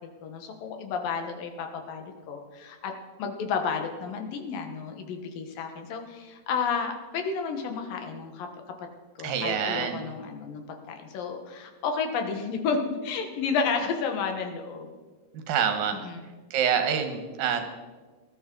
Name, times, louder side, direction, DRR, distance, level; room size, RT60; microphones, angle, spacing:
voice 1, 0.0-2.9 3.2-8.5 9.2-14.9 15.9-16.2, left 5 dB, 80° left, 5 dB, 3.1 m, -31 dB
voice 2, 9.2-10.0 15.3-16.0 16.5-17.7, right 7 dB, 85° right, 6 dB, 3.1 m, -26 dB
19.5 x 12.0 x 3.9 m, 1.4 s
omnidirectional pair, 4.0 m